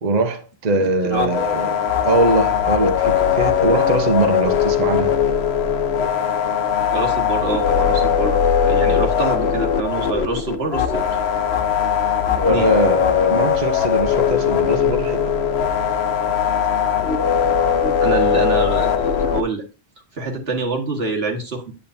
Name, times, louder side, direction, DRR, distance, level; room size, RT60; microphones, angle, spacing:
voice 1, 0.0-1.8 2.0-5.1 12.5-15.3, right 2 dB, 45° right, 0.9 m, -21 dB
voice 2, 0.8-1.3 6.9-11.2 12.3-12.7 18.0-19.6 20.1-21.7, right 3 dB, 75° right, 1.8 m, -26 dB
sound 1, 1.1-19.4, left 8 dB, 90° left, 1.1 m, -19 dB
8.9 x 8.4 x 2.6 m
omnidirectional pair, 1.1 m